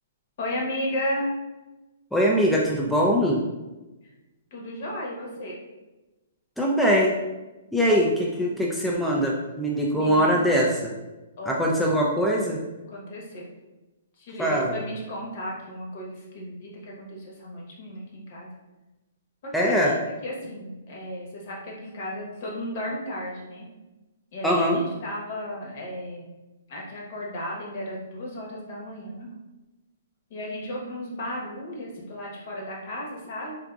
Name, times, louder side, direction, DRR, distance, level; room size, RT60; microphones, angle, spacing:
voice 1, 0.4-1.3 4.0-4.1 4.5-5.6 9.9-10.5 11.4-11.6 12.9-13.5 14.2-18.5 19.4-19.9 20.2-23.7 24.3-26.3 26.7-29.3 30.3-33.6, equal, 50° left, -2 dB, 1.0 m, -34 dB
voice 2, 2.1-3.4 6.6-7.2 7.7-10.9 11.5-12.6 14.4-14.7 19.5-19.9 24.4-24.8, equal, ahead, -4 dB, 0.3 m, -22 dB
3.8 x 2.4 x 2.3 m, 1.1 s
hypercardioid pair, 145°, 0 cm